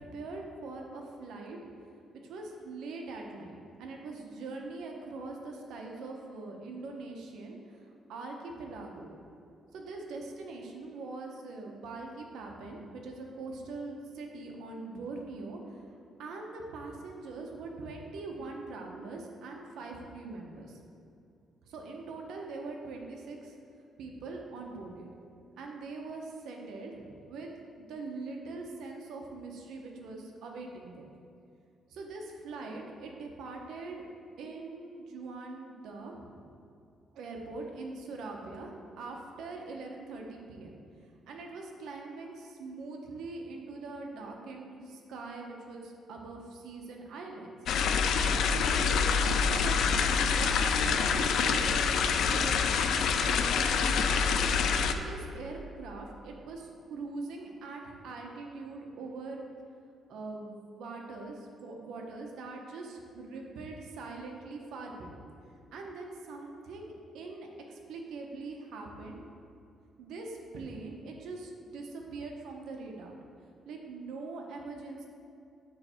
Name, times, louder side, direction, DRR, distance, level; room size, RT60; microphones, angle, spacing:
voice 1, 0.0-1.6 2.2-9.1 9.7-20.8 21.6-23.6 24.0-25.1 25.6-27.5 27.8-31.0 31.9-34.0 34.4-36.4 37.1-38.7 39.0-40.8 41.3-47.5 48.3-49.9 50.3-54.4 54.9-59.4 60.1-65.2 65.7-69.2 70.0-73.2 73.6-75.1, right 3 dB, 75° right, 1 dB, 0.8 m, -42 dB
sound 1, 47.7-54.9, left 6 dB, 65° left, 0.3 m, -26 dB
7.1 x 3.2 x 5.6 m, 2.5 s
cardioid pair, 180°, 0 cm